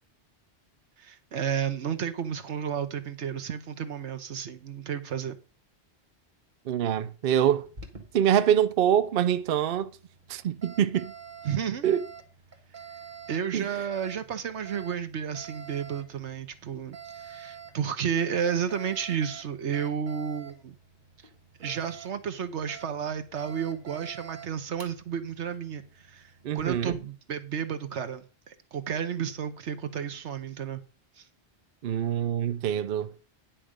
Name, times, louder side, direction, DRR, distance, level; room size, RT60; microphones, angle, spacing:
voice 1, 1.0-5.4 11.4-11.9 13.3-20.7 21.6-30.8 31.2-31.3, right 8 dB, 85° right, 1.3 m, -32 dB
voice 2, 6.7-7.6 8.1-9.9 10.3-11.1 11.8-12.1 13.5-13.7 26.4-26.9 31.8-33.1, right 9 dB, 60° right, 0.7 m, -25 dB
Alarm, 7.6-27.0, right 6 dB, 45° right, 1.7 m, -48 dB
10.0 x 5.9 x 5.0 m
omnidirectional pair, 1.1 m